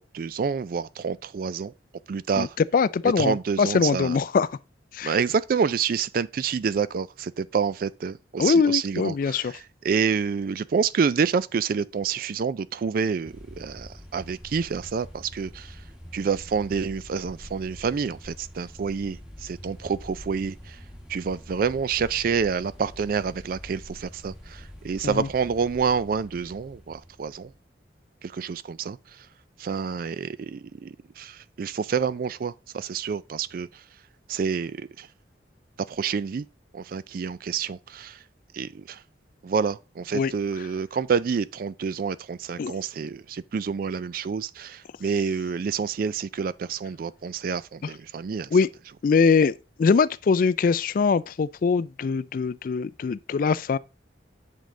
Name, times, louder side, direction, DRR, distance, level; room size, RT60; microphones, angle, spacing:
voice 1, 0.0-1.7 2.1-2.6 3.2-4.2 5.0-15.8 16.1-20.8 21.1-27.5 28.2-29.3 29.6-33.8 34.3-35.1 35.8-36.5 36.7-38.2 38.5-39.0 39.4-48.5, right 6 dB, 50° right, 0.3 m, -28 dB
voice 2, 2.7-4.5 4.9-5.2 8.4-9.5 25.0-25.3 40.1-40.3 42.6-42.7 48.5-48.7 49.0-49.5 49.8-53.8, left 5 dB, 50° left, 0.3 m, -22 dB
sound 1, 13.2-27.5, equal, 5° right, 1.3 m, -45 dB
7.5 x 5.3 x 3.7 m
head